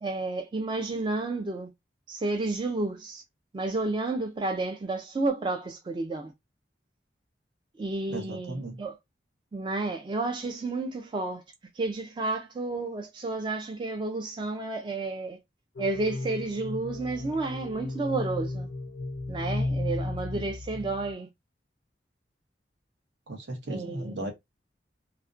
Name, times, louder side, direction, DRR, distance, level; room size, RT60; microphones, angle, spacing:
voice 1, 0.0-1.7 2.1-3.2 3.5-6.3 7.8-9.0 9.5-11.4 11.7-15.4 15.8-18.7 19.3-21.3 23.7-24.3, right 3 dB, 25° right, 0.3 m, -31 dB
voice 2, 8.1-8.8 20.3-20.5 23.3-24.3, right 1 dB, 70° right, 0.8 m, -36 dB
sound 1, 15.8-21.1, left 2 dB, 75° left, 0.4 m, -34 dB
2.4 x 2.1 x 2.4 m
head